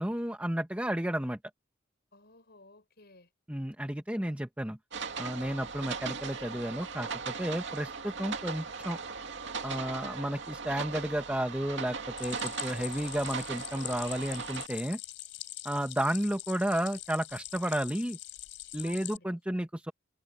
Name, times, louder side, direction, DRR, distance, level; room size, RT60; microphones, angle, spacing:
voice 1, 0.0-1.4 3.5-4.8 5.2-9.0 9.6-15.0 15.6-18.2 18.7-19.9, right 1 dB, 10° right, 1.4 m, -32 dB
voice 2, 2.1-3.3 18.8-19.7, left 2 dB, 60° left, 5.9 m, -56 dB
sound 1, 4.9-14.7, right 5 dB, 70° right, 2.5 m, -38 dB
Stream, 12.2-19.2, left 15 dB, 80° left, 4.8 m, -43 dB
head